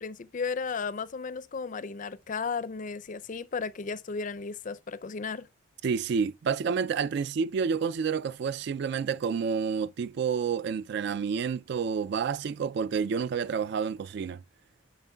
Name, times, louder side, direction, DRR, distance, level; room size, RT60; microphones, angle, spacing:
voice 1, 0.0-5.5, left 5 dB, 40° left, 0.4 m, -34 dB
voice 2, 5.8-14.4, right 6 dB, 55° right, 0.3 m, -29 dB
9.0 x 5.8 x 2.2 m
head